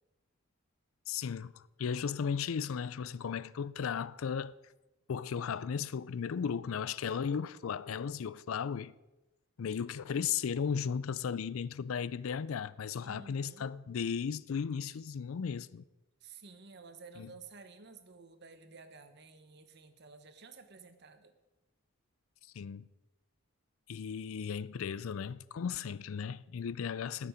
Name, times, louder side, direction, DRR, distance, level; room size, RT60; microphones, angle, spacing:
voice 1, 1.1-4.5 5.1-8.9 9.6-15.8 17.2-17.3 22.5-22.8 23.9-27.3, left 6 dB, 85° left, 0.4 m, -35 dB
voice 2, 13.0-13.7 16.2-21.3, right 4 dB, 55° right, 1.1 m, -53 dB
19.5 x 7.0 x 5.1 m
head